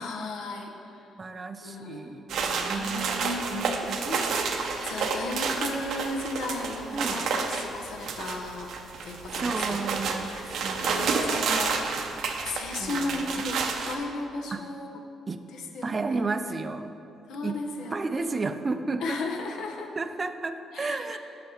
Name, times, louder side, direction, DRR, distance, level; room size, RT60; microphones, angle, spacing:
voice 1, 0.0-1.0 1.6-2.1 2.6-8.7 9.0-12.1 12.4-15.0 15.5-16.2 17.3-18.5 19.0-19.9 20.7-21.0, left 2 dB, 80° left, 2 dB, 0.9 m, -36 dB
voice 2, 1.2-4.0 6.9-7.3 9.3-11.2 11.8-11.9 12.8-13.3 14.5-14.6 15.3-15.4 15.8-17.0 17.4-17.6 17.9-19.2 20.0-21.2, right 3 dB, 30° right, 9 dB, 0.4 m, -33 dB
sound 1, 2.3-13.9, right 5 dB, 75° right, 0.7 m, -30 dB
6.4 x 6.0 x 6.4 m, 2.8 s
cardioid pair, 90°, 0 cm